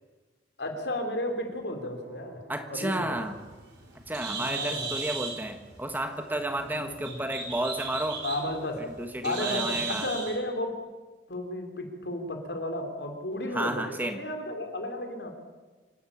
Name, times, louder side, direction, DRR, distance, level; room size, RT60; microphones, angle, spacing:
voice 1, 0.6-2.4 2.7-3.3 4.4-5.0 6.7-7.2 8.2-8.9 9.2-10.7 11.3-15.3, left 1 dB, 80° left, 4 dB, 3.9 m, -33 dB
sound 1, 1.8-3.8, right 1 dB, 40° right, 5.3 m, -57 dB
voice 2, 2.5-3.4 4.1-8.2 9.0-10.1 13.5-14.2, right 1 dB, 10° right, 6 dB, 1.5 m, -32 dB
Bird, 3.1-10.4, right 4 dB, 85° right, 5.2 m, -37 dB
27.0 x 13.0 x 8.7 m, 1.3 s
head